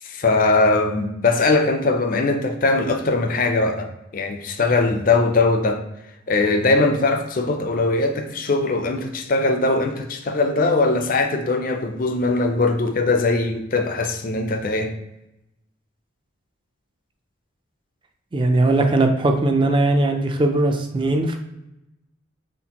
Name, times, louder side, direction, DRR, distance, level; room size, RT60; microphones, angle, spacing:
voice 1, 0.0-5.8 6.3-14.9, left 3 dB, 45° left, 0.4 m, -20 dB
voice 2, 18.3-21.4, right 2 dB, 25° right, 0.4 m, -19 dB
4.3 x 4.2 x 2.9 m
head